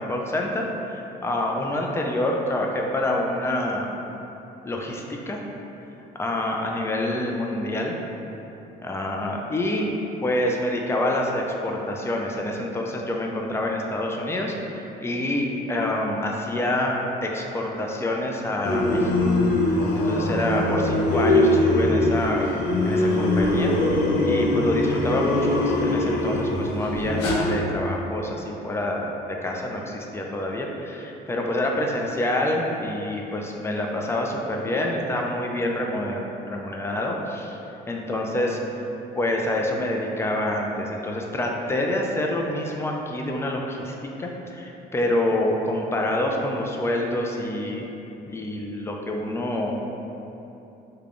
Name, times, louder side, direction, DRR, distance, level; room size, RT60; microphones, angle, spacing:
voice 1, 0.0-3.9 4.6-5.4 6.2-7.9 8.8-9.9 10.2-16.9 17.2-19.1 19.6-22.5 22.8-23.7 24.3-29.1 29.4-37.6 37.9-38.8 39.2-47.9 48.3-49.8, left 1 dB, 15° left, 0 dB, 0.4 m, -27 dB
sound 1, 18.6-27.6, left 1 dB, 85° left, 0.6 m, -22 dB
3.4 x 2.2 x 3.7 m, 3.0 s
cardioid pair, 110°, 17 cm